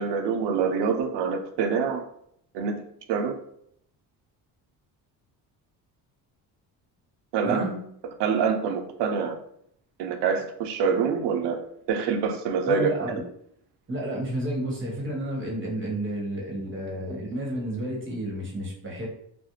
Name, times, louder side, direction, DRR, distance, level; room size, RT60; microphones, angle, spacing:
voice 1, 0.0-2.0 2.5-2.8 3.1-3.4 7.3-7.7 8.2-9.4 10.0-11.6 11.9-12.9, right 6 dB, 75° right, 5 dB, 0.6 m, -25 dB
voice 2, 7.4-7.8 12.7-13.2 13.9-19.1, right 1 dB, 30° right, -2 dB, 1.0 m, -31 dB
2.4 x 2.0 x 2.9 m, 0.69 s
cardioid pair, 85°, 41 cm